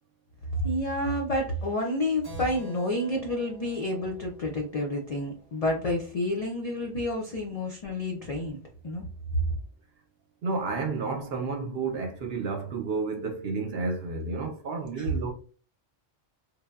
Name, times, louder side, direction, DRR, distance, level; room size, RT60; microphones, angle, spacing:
voice 1, 0.6-8.6 8.8-9.1 14.9-15.1, left 1 dB, 75° left, 0.3 m, -29 dB
Keyboard (musical), 2.2-6.3, equal, 30° right, 0.4 m, -48 dB
voice 2, 10.4-15.3, right 4 dB, 65° right, 0.7 m, -31 dB
3.2 x 2.0 x 2.3 m
omnidirectional pair, 1.3 m